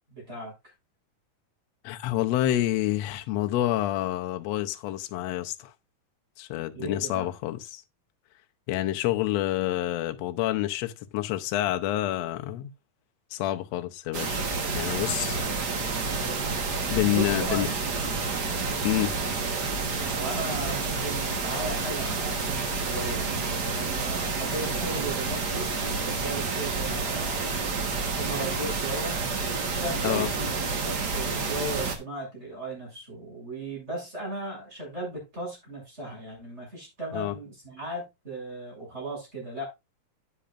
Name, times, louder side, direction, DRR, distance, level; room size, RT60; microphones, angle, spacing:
voice 1, 0.1-0.5 6.7-7.3 15.0-15.5 17.0-17.7 20.1-27.5 28.1-29.2 29.7-39.7, right 2 dB, 20° right, 7.2 m, -36 dB
voice 2, 1.8-5.7 6.4-7.8 8.7-12.7 13.3-14.4 14.7-15.4 16.9-17.7 18.8-19.1 30.0-30.3 37.1-37.3, left 14 dB, 75° left, 1.6 m, -28 dB
sound 1, 14.1-32.0, right 4 dB, 50° right, 1.2 m, -29 dB
10.0 x 9.8 x 2.5 m
omnidirectional pair, 3.9 m